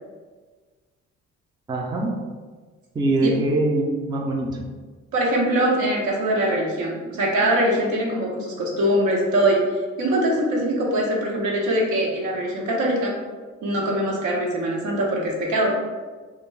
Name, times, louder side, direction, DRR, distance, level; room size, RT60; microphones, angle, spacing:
voice 1, 1.7-2.1 3.0-4.7, right 2 dB, 15° right, 0 dB, 0.4 m, -23 dB
voice 2, 5.1-9.6 10.0-13.1 13.6-15.7, right 1 dB, 75° right, -2 dB, 0.7 m, -22 dB
2.4 x 2.2 x 3.1 m, 1.4 s
cardioid pair, 90°, 30 cm